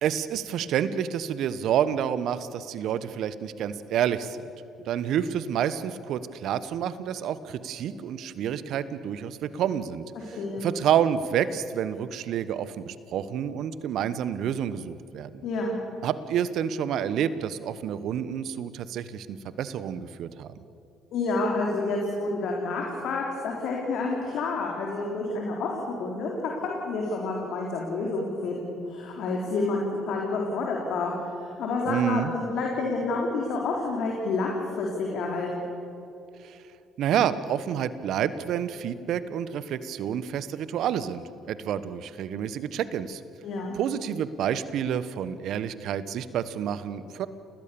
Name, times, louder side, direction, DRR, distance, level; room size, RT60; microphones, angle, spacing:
voice 1, 0.0-4.4 4.8-15.4 16.0-20.5 31.9-32.3 36.4-36.6 37.0-43.2 43.8-47.3, right 9 dB, 65° right, 15 dB, 1.2 m, -29 dB
voice 2, 10.4-10.7 15.4-15.8 21.1-31.1 31.4-35.6 43.4-43.7, left 3 dB, 60° left, -1 dB, 3.7 m, -29 dB
30.0 x 19.5 x 7.0 m, 2.8 s
hypercardioid pair, 50°, 0 cm